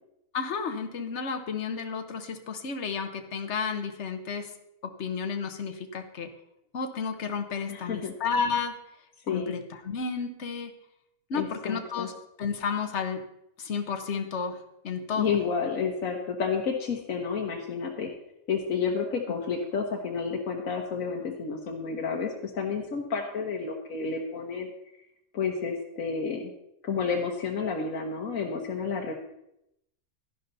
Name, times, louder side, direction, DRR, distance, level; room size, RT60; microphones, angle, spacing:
voice 1, 0.3-4.5 4.8-6.3 6.7-8.7 9.3-10.7 11.3-12.1 12.4-13.2 13.6-14.6 14.8-15.4, left 5 dB, 60° left, 7 dB, 1.4 m, -32 dB
voice 2, 7.7-8.1 9.3-9.5 11.3-12.1 15.1-18.1 18.5-24.7 25.3-26.5 26.8-29.1, left 5 dB, 80° left, 0 dB, 1.6 m, -30 dB
11.5 x 11.0 x 4.1 m, 0.81 s
omnidirectional pair, 1.4 m